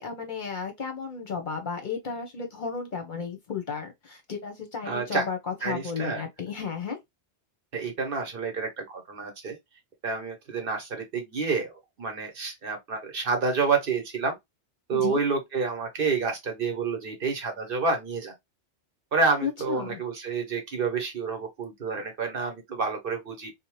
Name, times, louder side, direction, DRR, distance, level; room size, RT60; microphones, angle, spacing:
voice 1, 0.0-7.0 14.9-15.2 19.4-20.0, left 6 dB, 50° left, 0.7 m, -33 dB
voice 2, 4.9-5.3 5.6-6.2 7.7-9.6 10.0-11.7 12.0-14.4 14.9-18.3 19.1-23.5, right 4 dB, 55° right, 0.9 m, -29 dB
2.7 x 2.1 x 3.0 m
omnidirectional pair, 1.2 m